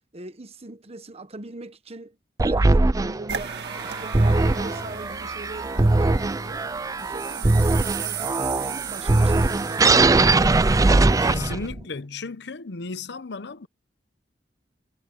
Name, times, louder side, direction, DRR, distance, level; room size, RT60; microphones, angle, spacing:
voice 1, 0.1-6.7 7.0-10.7, right 2 dB, 35° right, 1.2 m, -41 dB
sound 1, 2.4-11.8, right 2 dB, 20° right, 0.4 m, -21 dB
sound 2, 3.3-11.5, right 7 dB, 65° right, 1.9 m, -36 dB
voice 2, 11.2-13.7, left 4 dB, 70° left, 0.8 m, -34 dB
head